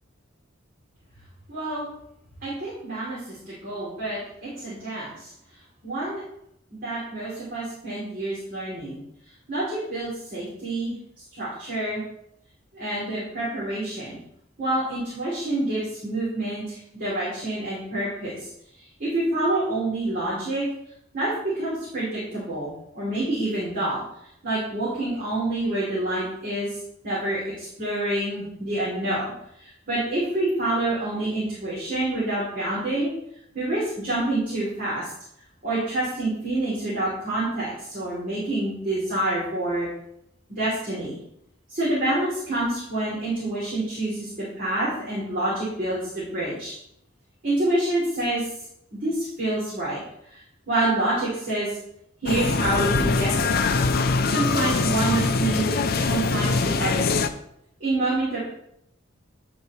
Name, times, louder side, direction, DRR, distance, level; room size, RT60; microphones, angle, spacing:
voice 1, 1.5-1.9 2.4-5.3 5.8-6.2 6.7-9.0 9.5-11.0 11.4-12.0 12.7-14.2 14.6-18.5 18.8-20.7 21.1-24.0 24.4-33.1 33.5-35.1 35.6-39.9 40.5-41.2 41.7-46.7 47.4-48.5 48.9-51.8 52.2-53.7 54.2-57.1 57.8-58.4, right 2 dB, 45° right, -10 dB, 3.4 m, -27 dB
sound 1, 52.3-57.3, left 4 dB, 50° left, 0.5 m, -23 dB
11.0 x 4.7 x 3.3 m, 0.76 s
head